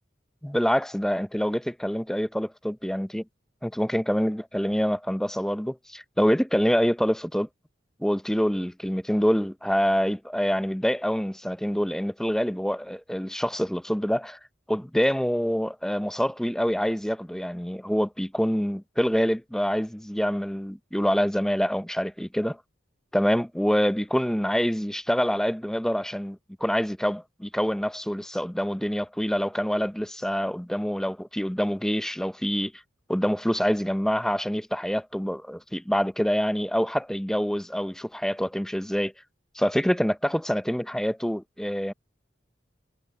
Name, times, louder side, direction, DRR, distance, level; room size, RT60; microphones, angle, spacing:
voice 1, 0.4-3.2 3.6-7.5 8.0-14.4 14.7-22.6 23.1-32.7 33.1-39.1 39.6-41.9, equal, 5° left, 0.6 m, -26 dB
head